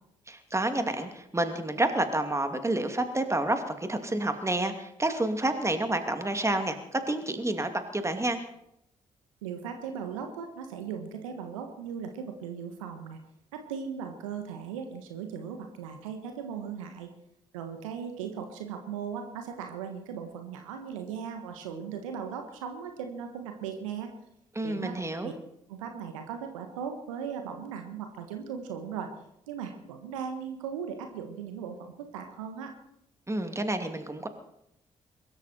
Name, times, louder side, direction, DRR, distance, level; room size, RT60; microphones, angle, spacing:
voice 1, 0.3-8.4 24.5-25.3 33.3-34.3, right 1 dB, 15° right, 7 dB, 2.6 m, -29 dB
voice 2, 9.4-13.2 13.5-17.1 17.5-24.1 24.6-25.0 25.2-25.3 25.7-29.1 29.5-32.7, right 7 dB, 85° right, 5 dB, 1.4 m, -38 dB
22.5 x 13.0 x 4.4 m, 0.78 s
hypercardioid pair, 40°, 16 cm